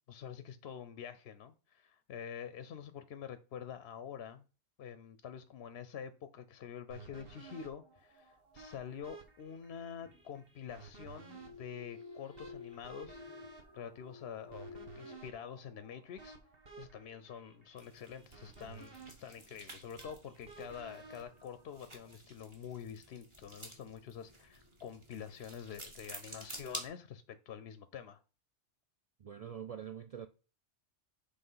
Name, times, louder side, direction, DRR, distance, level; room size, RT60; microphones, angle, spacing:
voice 1, 0.1-4.4 4.8-13.2 13.7-14.7 15.0-16.4 16.8-28.2, left 8 dB, 65° left, 0.8 m, -47 dB
sound 1, 6.9-22.1, right 4 dB, 55° right, 1.4 m, -55 dB
sound 2, 8.0-8.1 10.0-10.5 11.2-15.2, left 4 dB, 25° left, 0.8 m, -52 dB
sound 3, 17.8-26.9, right 1 dB, 25° right, 1.5 m, -51 dB
voice 2, 29.2-30.3, right 8 dB, 70° right, 0.3 m, -44 dB
7.7 x 3.4 x 5.5 m
omnidirectional pair, 1.2 m